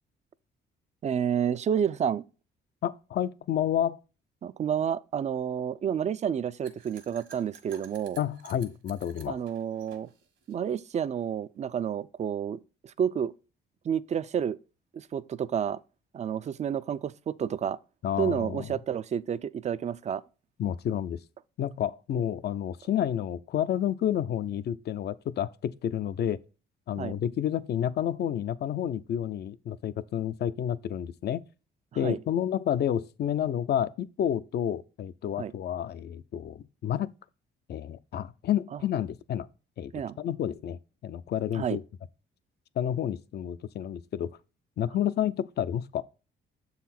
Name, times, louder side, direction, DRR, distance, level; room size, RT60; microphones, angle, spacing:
voice 1, 1.0-2.2 4.4-8.2 9.3-10.1 10.5-13.3 13.8-14.6 14.9-15.8 16.1-17.8 18.2-20.2 27.0-27.2 32.0-32.2 35.4-35.5 39.9-40.2 41.5-41.8, right 8 dB, 35° right, 0.4 m, -30 dB
voice 2, 2.8-4.0 8.2-9.4 18.0-18.7 20.6-21.2 21.6-26.4 26.9-31.4 31.9-37.1 37.7-39.5 39.8-39.9 40.2-41.8 42.8-44.3 44.8-46.0, left 10 dB, 55° left, 0.5 m, -30 dB
sound 1, 6.6-11.1, right 6 dB, 70° right, 1.5 m, -52 dB
7.2 x 4.1 x 4.2 m
cardioid pair, 90°, 20 cm